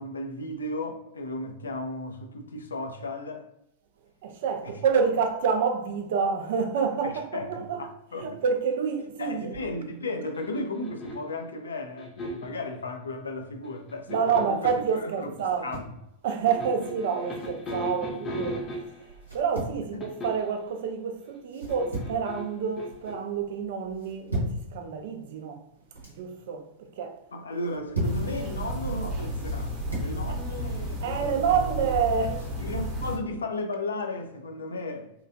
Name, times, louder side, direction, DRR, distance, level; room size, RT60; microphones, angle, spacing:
voice 1, 0.0-3.5 4.6-4.7 7.0-8.4 9.2-15.3 15.6-15.9 19.9-20.0 27.3-31.8 32.2-35.1, left 2 dB, 70° left, 0.4 m, -35 dB
voice 2, 4.2-7.8 8.1-9.5 14.1-15.7 16.2-18.6 19.3-25.6 26.1-27.2 31.0-32.4, right 6 dB, 55° right, 0.4 m, -28 dB
sound 1, 10.3-11.4 12.0-12.6 13.6-14.9 16.5-19.2 20.0-20.6 21.7-23.1, left 1 dB, 25° left, 0.6 m, -37 dB
sound 2, 15.4-16.0 17.3-17.9 19.2-19.8 21.5-22.3 22.6-23.1 24.0-24.6 25.7-26.2 27.5-28.3 29.4-30.2, right 1 dB, 85° right, 0.8 m, -34 dB
sound 3, 28.0-33.2, right 1 dB, 40° right, 0.8 m, -32 dB
2.9 x 2.3 x 2.3 m
figure-of-eight pair, 90°, 0 cm